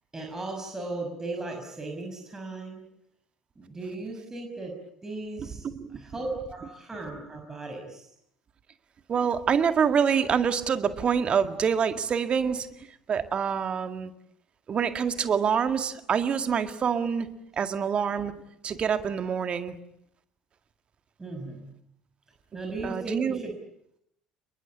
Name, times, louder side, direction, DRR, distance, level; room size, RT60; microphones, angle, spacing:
voice 1, 0.1-2.8 3.6-4.7 5.0-5.7 6.0-8.1 21.2-21.7 22.5-23.5, right 2 dB, 15° right, 2 dB, 5.9 m, -36 dB
voice 2, 5.4-6.0 9.1-12.7 13.1-14.1 14.7-17.3 17.6-18.3 18.6-19.8 22.8-23.4, right 7 dB, 35° right, 9 dB, 2.0 m, -26 dB
28.0 x 22.5 x 8.6 m, 0.77 s
figure-of-eight pair, 60°, 3 cm